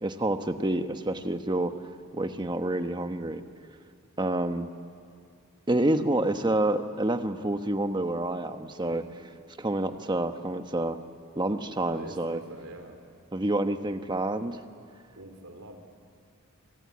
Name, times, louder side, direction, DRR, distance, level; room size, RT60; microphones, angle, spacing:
voice 1, 0.0-1.7 2.1-3.4 4.2-4.7 5.7-9.0 9.6-11.0 11.3-12.4 13.3-14.6, right 1 dB, 20° right, 8 dB, 1.1 m, -28 dB
voice 2, 8.8-9.2 11.8-13.0 15.2-15.8, right 1 dB, 80° right, 6 dB, 3.6 m, -45 dB
27.5 x 24.5 x 8.6 m, 2.2 s
head